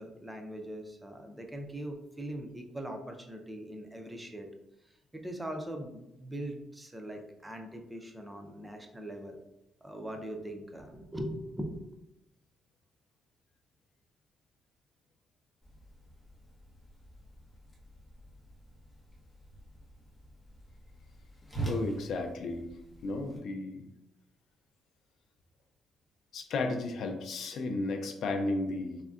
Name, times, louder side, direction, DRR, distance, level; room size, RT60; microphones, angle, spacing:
voice 1, 0.0-4.5 4.8-9.4 9.8-11.8, right 1 dB, 10° right, 3 dB, 0.5 m, -41 dB
Whoosh swoosh swish, 15.6-23.4, right 2 dB, 15° left, 0.9 m, -44 dB
voice 2, 21.6-22.7 23.0-23.9 26.3-29.0, left 2 dB, 70° left, 5 dB, 0.4 m, -33 dB
3.5 x 2.2 x 2.3 m, 0.88 s
cardioid pair, 90°, 0 cm